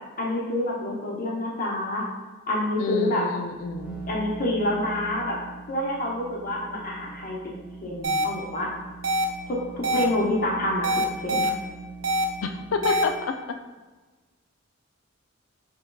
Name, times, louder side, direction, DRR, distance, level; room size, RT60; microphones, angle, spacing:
voice 1, 0.2-2.1 2.5-3.2 4.1-5.4 5.7-7.4 7.8-8.7 9.5-10.9 11.2-11.5 12.9-13.0, left 1 dB, 45° left, -3 dB, 0.8 m, -27 dB
voice 2, 2.8-4.0 12.4-13.4, left 4 dB, 80° left, 7 dB, 0.4 m, -28 dB
sound 1, 3.3-13.2, right 4 dB, 5° right, 0.3 m, -41 dB
sound 2, 8.0-8.2 9.0-9.2 9.8-10.0 10.8-11.5 12.0-12.2 12.8-13.0, right 1 dB, 80° right, 0.5 m, -24 dB
4.5 x 3.6 x 2.2 m, 1.3 s
head